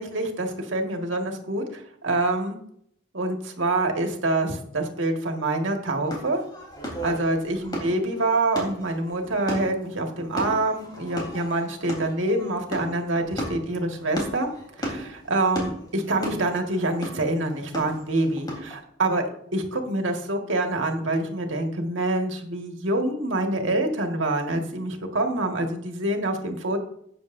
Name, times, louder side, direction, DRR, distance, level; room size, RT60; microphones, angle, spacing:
voice 1, 0.0-2.6 3.1-6.4 7.0-14.5 14.8-19.2 19.5-26.8, right 2 dB, 85° right, 3 dB, 1.8 m, -26 dB
sound 1, 6.1-18.8, equal, 25° left, 3.7 m, -35 dB
13.5 x 9.1 x 2.7 m, 0.68 s
head